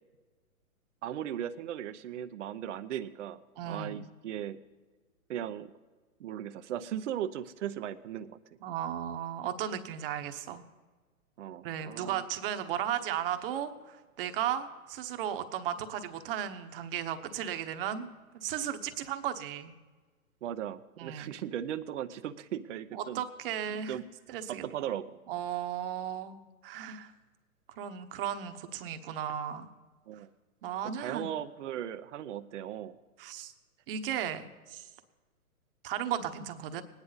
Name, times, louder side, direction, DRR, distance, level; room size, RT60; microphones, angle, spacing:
voice 1, 1.0-4.6 5.3-5.7 6.2-8.4 11.4-12.3 20.4-23.2 23.7-24.0 24.5-25.2 30.1-30.3 30.8-33.0, right 10 dB, 55° right, 9 dB, 0.7 m, -37 dB
voice 2, 3.6-4.1 8.6-10.6 11.6-18.1 18.3-19.7 21.0-21.3 22.9-24.0 24.3-24.6 25.3-26.4 26.6-27.1 27.8-29.7 30.6-31.3 33.2-33.5 33.9-34.9 35.8-36.8, right 10 dB, 40° right, 9 dB, 1.1 m, -35 dB
20.0 x 9.7 x 4.1 m, 1.3 s
hypercardioid pair, 135°, 43 cm